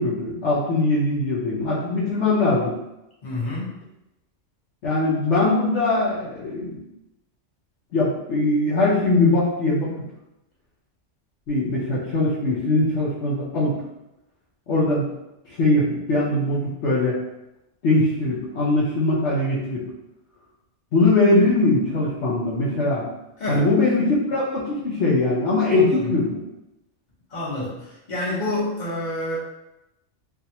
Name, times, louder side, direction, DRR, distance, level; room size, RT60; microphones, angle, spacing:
voice 1, 0.0-2.7 4.8-6.8 7.9-10.0 11.5-13.7 14.7-15.1 15.5-17.2 17.8-19.8 20.9-23.1 23.5-26.4, left 2 dB, 65° left, -8 dB, 1.0 m, -21 dB
voice 2, 3.2-3.7 23.4-23.7 25.7-26.1 27.3-29.4, left 2 dB, 40° left, -8 dB, 1.2 m, -28 dB
3.5 x 2.4 x 2.8 m, 0.90 s
omnidirectional pair, 1.3 m